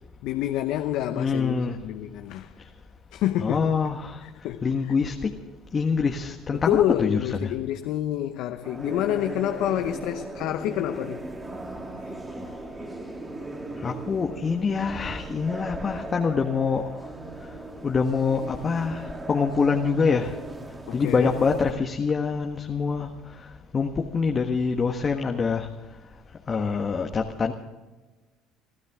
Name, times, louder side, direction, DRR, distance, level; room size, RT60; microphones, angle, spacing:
voice 1, 0.2-2.5 3.1-3.7 4.2-4.9 6.5-11.2 11.9-12.1 20.9-21.3, left 12 dB, 70° left, 0.8 m, -28 dB
voice 2, 1.1-1.8 3.4-4.2 4.6-5.3 5.7-7.4 13.8-16.8 17.8-20.3 20.9-23.1 23.7-25.7 26.5-27.5, left 5 dB, 35° left, 1.4 m, -25 dB
sound 1, 8.6-21.7, right 2 dB, 20° right, 2.8 m, -38 dB
27.5 x 13.0 x 3.7 m
supercardioid pair, 75°, 0 cm